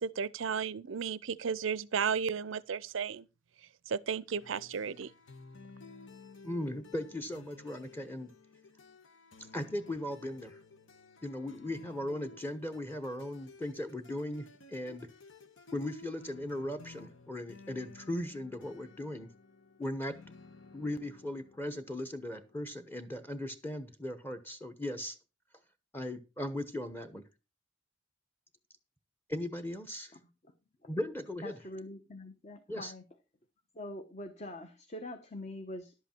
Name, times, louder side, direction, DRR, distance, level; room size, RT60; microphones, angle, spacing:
voice 1, 0.0-3.3 3.9-5.1, right 6 dB, 80° right, 0.5 m, -34 dB
sound 1, 4.4-23.8, left 4 dB, 75° left, 1.2 m, -55 dB
voice 2, 6.4-8.3 9.4-10.6 11.2-15.1 15.7-19.3 19.8-20.2 20.7-25.2 25.9-27.2 29.3-30.1 30.9-31.6 32.7-32.9, left 1 dB, 10° left, 0.9 m, -38 dB
voice 3, 31.4-33.0 33.7-35.9, left 1 dB, 35° left, 1.0 m, -44 dB
11.5 x 8.0 x 4.4 m
head